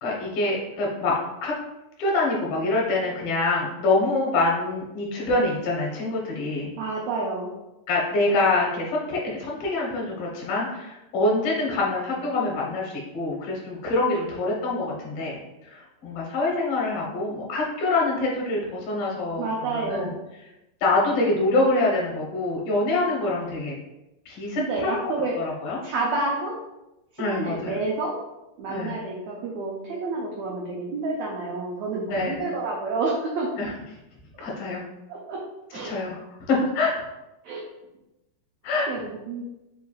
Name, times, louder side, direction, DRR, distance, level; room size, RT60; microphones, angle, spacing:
voice 1, 0.0-1.6 2.0-6.7 7.9-20.1 20.8-23.7 24.3-25.0 25.3-25.8 27.2-27.8 28.7-29.0 32.1-32.4 33.6-33.7 34.4-34.8 35.8-37.1 38.6-38.9, left 2 dB, 60° left, -4 dB, 1.7 m, -25 dB
voice 2, 6.8-7.5 19.4-20.1 24.6-25.3 25.8-26.5 27.1-28.2 28.6-33.5 35.1-35.4 35.7-35.9 37.4-37.6 38.9-39.4, right 3 dB, 85° right, -2 dB, 1.5 m, -29 dB
4.6 x 4.5 x 2.3 m, 0.96 s
omnidirectional pair, 3.8 m